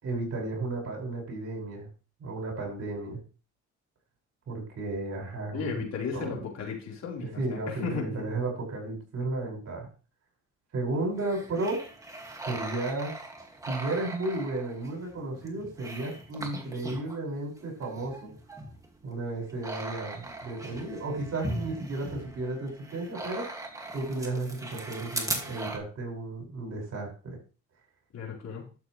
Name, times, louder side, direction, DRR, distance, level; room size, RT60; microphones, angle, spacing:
voice 1, 0.0-1.9 2.2-3.2 4.5-6.3 7.2-9.9 10.7-11.8 12.4-13.2 13.6-18.3 19.0-23.6 23.9-27.4, right 2 dB, 55° right, -1 dB, 5.7 m, -33 dB
voice 2, 5.5-8.3 28.1-28.6, left 6 dB, 60° left, -2 dB, 4.2 m, -35 dB
sound 1, 11.1-17.2 17.6-25.8, right 2 dB, 10° right, 2.1 m, -39 dB
12.0 x 7.4 x 3.3 m, 0.35 s
cardioid pair, 90°, 30 cm